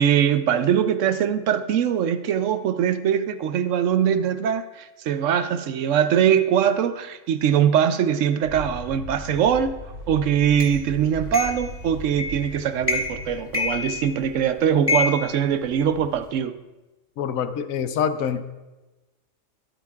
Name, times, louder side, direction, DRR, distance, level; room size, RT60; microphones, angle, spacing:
voice 1, 0.0-9.7 10.1-16.6, right 8 dB, 70° right, 1.0 m, -22 dB
sound 1, 8.4-14.9, left 1 dB, 55° right, 1.8 m, -39 dB
sound 2, 10.6-10.7 11.3-11.7 12.2-12.5 12.8-13.2 13.5-14.4 14.9-16.1, left 3 dB, 10° left, 1.9 m, -27 dB
voice 2, 17.2-18.4, left 7 dB, 90° left, 1.1 m, -25 dB
23.5 x 9.0 x 2.4 m
omnidirectional pair, 1.4 m